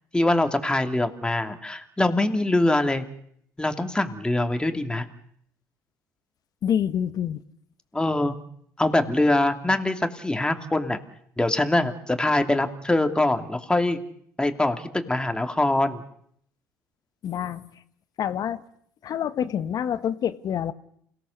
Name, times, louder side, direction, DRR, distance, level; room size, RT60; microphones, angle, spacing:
voice 1, 0.1-3.0 3.6-5.0 7.9-8.3 8.8-11.0 11.4-14.0 14.4-16.0, left 2 dB, 10° left, 6 dB, 2.6 m, -23 dB
voice 2, 6.6-7.4 17.2-17.6 18.2-18.6 19.0-20.7, left 9 dB, 50° left, 12 dB, 1.4 m, -27 dB
28.5 x 17.5 x 6.5 m, 0.67 s
hypercardioid pair, 65°, 8 cm